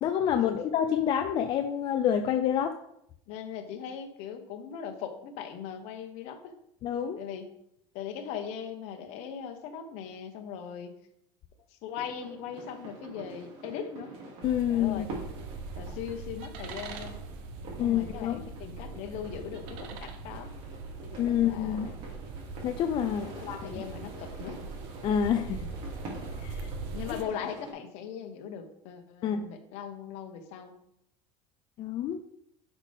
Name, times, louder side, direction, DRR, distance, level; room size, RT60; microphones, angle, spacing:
voice 1, 0.0-2.7 6.8-7.2 14.4-15.1 17.8-18.4 21.2-21.9 22.6-23.8 25.0-25.7 26.3-26.7 29.2-29.5 31.8-32.2, left 9 dB, 40° left, 6 dB, 0.5 m, -28 dB
voice 2, 3.3-6.5 7.2-7.5 7.9-10.9 11.7-14.1 14.7-15.1 15.7-17.2 17.8-20.5 21.1-22.0 23.1-24.6 26.9-30.7, left 8 dB, 60° left, 6 dB, 1.2 m, -40 dB
sound 1, 11.9-27.7, right 2 dB, 45° right, 2.8 m, -46 dB
sound 2, 14.4-27.2, right 4 dB, 65° right, 1.1 m, -41 dB
10.5 x 5.4 x 3.6 m, 0.77 s
cardioid pair, 160°, 13 cm